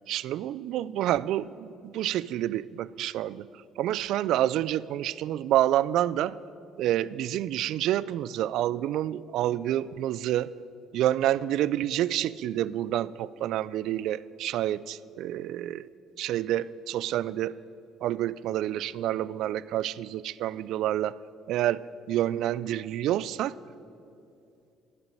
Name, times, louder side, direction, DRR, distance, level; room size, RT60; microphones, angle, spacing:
voice 1, 0.1-3.5 3.8-6.4 6.8-10.5 10.9-15.9 16.2-17.6 18.0-21.2 21.5-23.5, right 12 dB, 75° right, 19 dB, 0.3 m, -28 dB
12.0 x 7.9 x 9.0 m, 2.6 s
cardioid pair, 100°, 0 cm